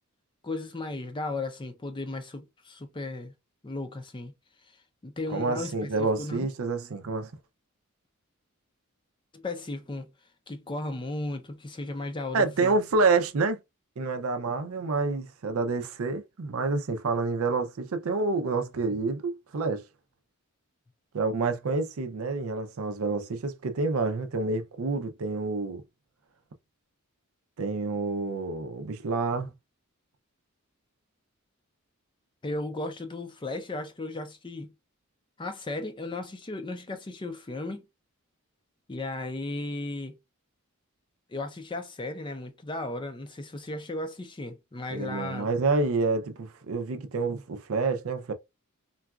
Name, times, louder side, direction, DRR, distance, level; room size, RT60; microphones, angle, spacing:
voice 1, 0.4-3.3 3.6-4.3 5.0-6.5 9.3-10.1 10.5-12.7 32.4-34.7 35.4-37.8 38.9-40.2 41.3-45.5, left 2 dB, 20° left, 0.5 m, -35 dB
voice 2, 5.3-7.3 12.3-13.6 14.0-19.8 21.1-25.8 27.6-29.5 44.9-48.3, right 3 dB, 70° right, 0.5 m, -28 dB
3.9 x 2.3 x 2.3 m
head